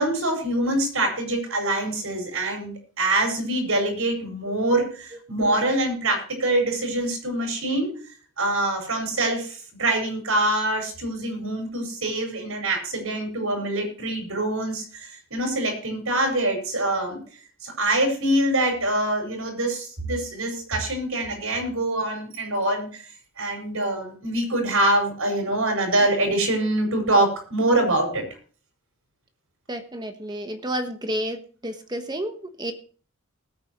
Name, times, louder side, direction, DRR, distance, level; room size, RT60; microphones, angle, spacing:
voice 1, 0.0-7.9 8.4-17.2 17.6-23.0 23.4-28.2, right 1 dB, 80° right, 4 dB, 5.4 m, -24 dB
voice 2, 29.7-32.7, equal, 20° right, 7 dB, 1.3 m, -31 dB
20.0 x 8.7 x 3.0 m, 0.40 s
head